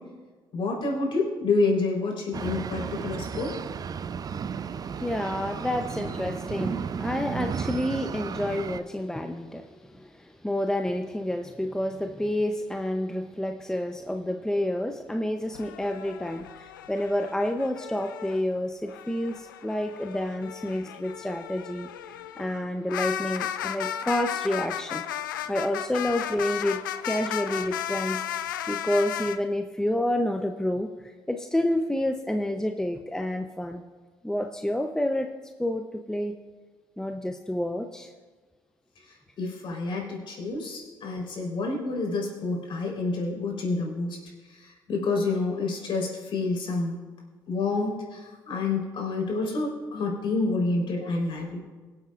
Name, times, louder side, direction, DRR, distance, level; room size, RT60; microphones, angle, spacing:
voice 1, 0.5-3.5 39.4-44.2 44.6-47.0 47.5-51.6, left 3 dB, 50° left, -1 dB, 4.0 m, -28 dB
sound 1, 2.3-8.8, right 6 dB, 35° right, 0.5 m, -33 dB
voice 2, 4.8-21.9 22.4-25.0 25.5-28.2 28.7-30.9 31.3-33.8 34.2-35.3 35.6-36.4 37.0-38.1, left 1 dB, 5° left, 5 dB, 0.7 m, -29 dB
sound 2, 15.5-18.4 18.8-29.4, left 11 dB, 85° left, 0.4 m, -35 dB
23.5 x 7.9 x 2.5 m, 1.4 s
hypercardioid pair, 50°, 11 cm